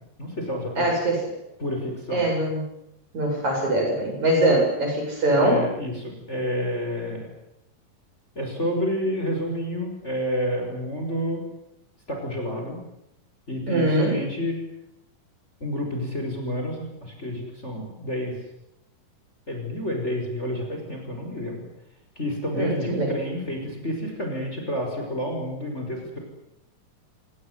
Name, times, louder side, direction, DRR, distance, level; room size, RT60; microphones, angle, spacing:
voice 1, 0.2-0.9 1.6-2.2 5.3-7.3 8.4-11.4 12.1-12.8 13.5-14.6 15.6-18.4 19.5-21.6 22.2-26.2, equal, 20° left, 2 dB, 5.7 m, -29 dB
voice 2, 0.8-1.2 2.1-2.7 3.1-5.6 13.7-14.2 22.5-23.1, right 1 dB, 55° right, 1 dB, 9.1 m, -22 dB
29.5 x 18.0 x 9.6 m, 0.84 s
omnidirectional pair, 4.0 m